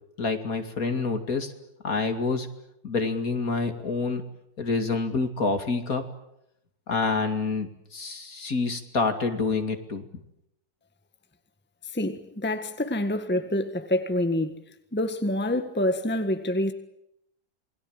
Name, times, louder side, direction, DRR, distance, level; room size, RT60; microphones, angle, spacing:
voice 1, 0.2-1.5 1.8-2.5 2.8-4.2 4.6-6.0 6.9-10.1, left 4 dB, 50° left, 2.8 m, -27 dB
voice 2, 11.9-14.6 14.9-16.7, left 1 dB, 5° left, 1.5 m, -27 dB
27.5 x 22.0 x 8.9 m
omnidirectional pair, 1.9 m